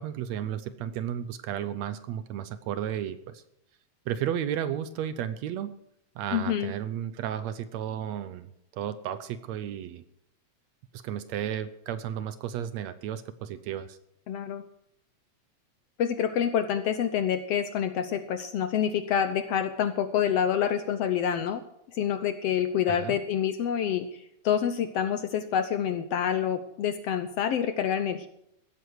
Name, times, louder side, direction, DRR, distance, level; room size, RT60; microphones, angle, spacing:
voice 1, 0.0-3.4 4.1-5.7 6.2-8.5 8.7-10.0 10.9-14.0 22.9-23.2, right 10 dB, 75° right, 13 dB, 1.8 m, -33 dB
voice 2, 6.3-6.7 14.3-14.6 16.0-21.6 21.9-28.3, left 9 dB, 70° left, 10 dB, 1.6 m, -27 dB
16.0 x 13.0 x 4.7 m, 0.77 s
omnidirectional pair, 3.5 m